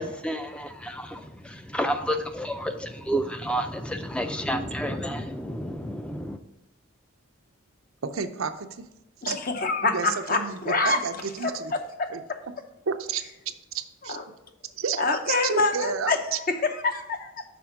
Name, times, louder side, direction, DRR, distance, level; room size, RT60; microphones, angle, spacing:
voice 1, 0.0-6.4, equal, 5° left, 0.4 m, -30 dB
voice 2, 8.0-8.8 9.3-9.4 9.8-11.7 12.1-12.2 12.9-13.2 13.7-14.3 14.8-16.4, right 6 dB, 90° right, 0.6 m, -31 dB
voice 3, 9.2-11.0 11.4-12.4 14.1-14.2 15.0-16.2 16.5-17.4, left 3 dB, 45° left, 0.7 m, -26 dB
6.1 x 4.3 x 5.7 m
head